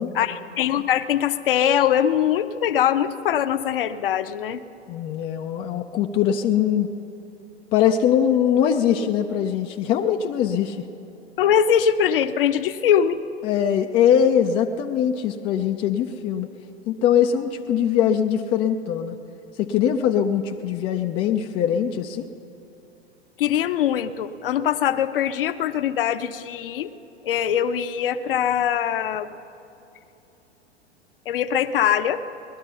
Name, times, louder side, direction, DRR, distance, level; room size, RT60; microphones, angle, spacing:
voice 1, 0.1-4.6 11.4-13.2 23.4-26.9 27.2-29.3 31.3-32.2, left 9 dB, 55° left, 12 dB, 0.7 m, -22 dB
voice 2, 4.9-6.9 7.7-10.8 13.4-16.5 16.9-19.2 19.6-22.3, left 9 dB, 20° left, 5 dB, 0.4 m, -22 dB
19.0 x 12.0 x 5.6 m, 2.9 s
figure-of-eight pair, 100°, 33 cm